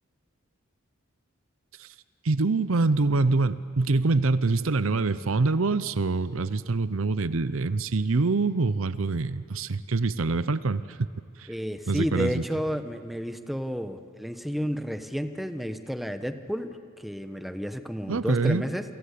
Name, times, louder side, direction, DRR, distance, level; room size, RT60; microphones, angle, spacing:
voice 1, 2.2-11.1 11.4-11.5 11.9-12.4 18.1-18.7, right 3 dB, 70° right, 15 dB, 0.7 m, -25 dB
voice 2, 11.5-18.8, equal, ahead, 8 dB, 1.1 m, -31 dB
28.5 x 24.5 x 8.5 m, 2.3 s
head